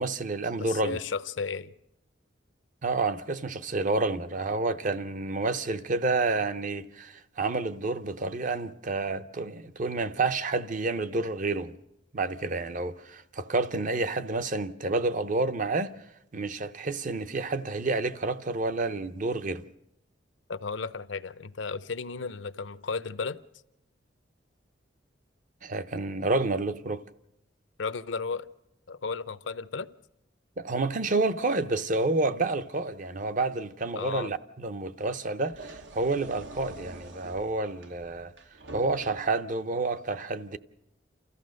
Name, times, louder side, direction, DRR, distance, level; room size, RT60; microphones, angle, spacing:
voice 1, 0.0-1.0 2.8-11.7 12.1-15.9 16.3-19.6 25.6-27.0 30.6-38.3 38.7-40.6, right 3 dB, 45° right, 0.7 m, -29 dB
voice 2, 0.6-1.7 20.5-23.4 27.8-28.5 28.9-29.9 34.0-34.3, left 4 dB, 75° left, 0.7 m, -34 dB
sound 1, 35.4-39.4, right 2 dB, 80° right, 1.1 m, -46 dB
29.0 x 14.0 x 6.4 m
head